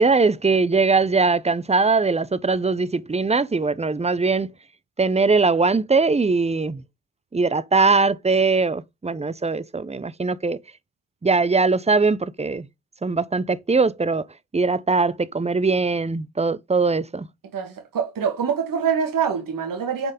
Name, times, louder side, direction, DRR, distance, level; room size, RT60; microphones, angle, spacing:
voice 1, 0.0-4.5 5.0-6.8 7.3-10.6 11.2-12.7 13.0-14.2 14.5-17.3, right 4 dB, 20° right, 0.7 m, -21 dB
voice 2, 17.5-20.1, right 7 dB, 70° right, 1.8 m, -25 dB
6.8 x 4.5 x 5.2 m
cardioid pair, 60°, 34 cm